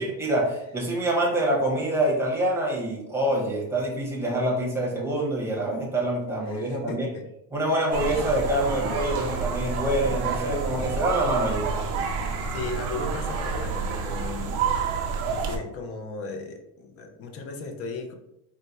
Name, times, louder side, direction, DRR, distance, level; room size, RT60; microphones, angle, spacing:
voice 1, 0.0-7.1 7.5-11.9, right 1 dB, 5° right, -3 dB, 0.8 m, -26 dB
voice 2, 6.5-7.3 12.5-14.8 15.5-18.1, left 3 dB, 35° left, 5 dB, 0.4 m, -36 dB
sound 1, 7.9-15.6, right 5 dB, 35° right, 0.5 m, -29 dB
4.0 x 2.1 x 4.4 m, 0.82 s
cardioid pair, 160°, 46 cm